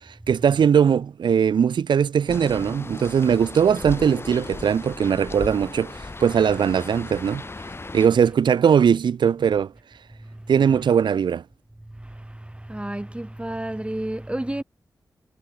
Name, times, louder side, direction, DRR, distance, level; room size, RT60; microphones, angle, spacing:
voice 1, 0.3-5.9 6.2-7.4 7.9-9.7 10.5-11.4, right 7 dB, 75° right, 0.6 m, -20 dB
sound 1, 2.3-8.1, left 3 dB, 30° left, 1.3 m, -36 dB
voice 2, 12.7-14.6, right 1 dB, 15° right, 4.4 m, -30 dB
cardioid pair, 55°, 8 cm